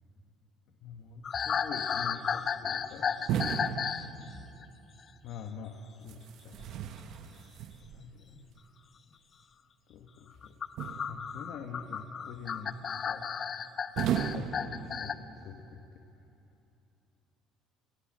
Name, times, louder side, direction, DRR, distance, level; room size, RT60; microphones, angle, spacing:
voice 1, 0.7-3.2 5.2-6.8 7.9-8.5 9.9-10.5 11.1-13.3 14.3-16.0, left 6 dB, 60° left, 3 dB, 1.6 m, -45 dB
sound 1, 1.2-4.1 4.3-4.6 6.8-7.1 8.4-8.5 10.4-15.1, left 7 dB, 30° left, 0.7 m, -34 dB
sound 2, 3.3-4.8 6.1-8.1 10.8-11.6 14.0-15.4, right 9 dB, 55° right, 1.2 m, -35 dB
28.5 x 21.5 x 7.7 m, 2.9 s
cardioid pair, 155°, 0 cm